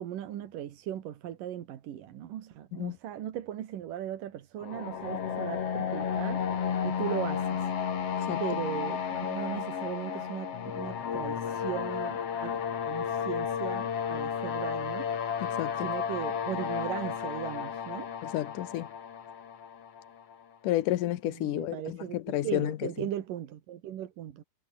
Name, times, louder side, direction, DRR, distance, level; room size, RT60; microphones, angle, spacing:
voice 1, 0.0-6.4 6.8-7.7 8.4-12.6 12.9-15.1 15.8-18.1 21.2-24.4, right 11 dB, 80° right, 3.3 m, -38 dB
sound 1, 4.6-20.4, left 7 dB, 50° left, 3.0 m, -33 dB
voice 2, 15.5-15.9 18.2-18.9 20.6-23.1, left 14 dB, 75° left, 2.7 m, -31 dB
omnidirectional pair, 3.8 m